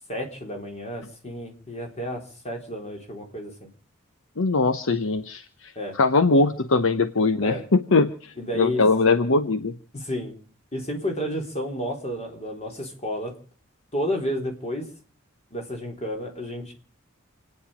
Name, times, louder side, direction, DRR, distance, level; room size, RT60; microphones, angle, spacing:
voice 1, 0.1-3.7 5.8-6.0 7.4-7.6 8.4-8.8 9.9-10.3 10.7-13.3 13.9-14.9 15.5-16.7, equal, 30° left, 3 dB, 3.9 m, -31 dB
voice 2, 4.4-9.7, left 3 dB, 65° left, 10 dB, 0.9 m, -21 dB
28.5 x 9.7 x 5.1 m, 0.40 s
head